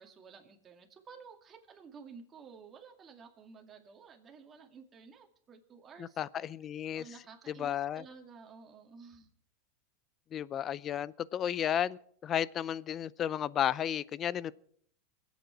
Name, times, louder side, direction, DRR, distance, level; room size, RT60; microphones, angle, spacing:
voice 1, 0.0-6.2 6.9-9.3, right 5 dB, 30° right, 2.2 m, -53 dB
voice 2, 6.0-7.1 7.5-8.0 10.3-14.5, left 10 dB, 35° left, 0.5 m, -33 dB
23.5 x 8.3 x 4.7 m
supercardioid pair, 110°, 0 cm